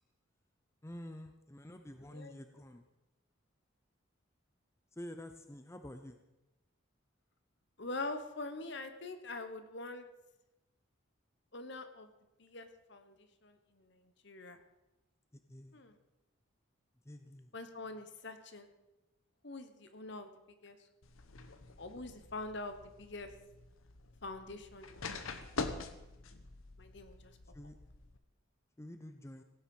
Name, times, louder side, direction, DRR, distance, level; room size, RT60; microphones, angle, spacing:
voice 1, 0.8-2.9 4.9-6.2 15.3-15.8 17.0-17.5 27.5-27.8 28.8-29.4, left 1 dB, 15° left, 7 dB, 0.6 m, -49 dB
voice 2, 7.8-10.1 11.5-12.1 12.4-14.6 15.7-16.0 17.5-18.7 19.4-20.3 20.6-20.8 21.8-23.3 24.2-25.6 26.8-27.3, left 2 dB, 55° left, 8 dB, 1.2 m, -44 dB
sound 1, 21.0-28.2, left 3 dB, 85° left, 1.0 m, -45 dB
16.5 x 9.0 x 5.5 m, 0.99 s
head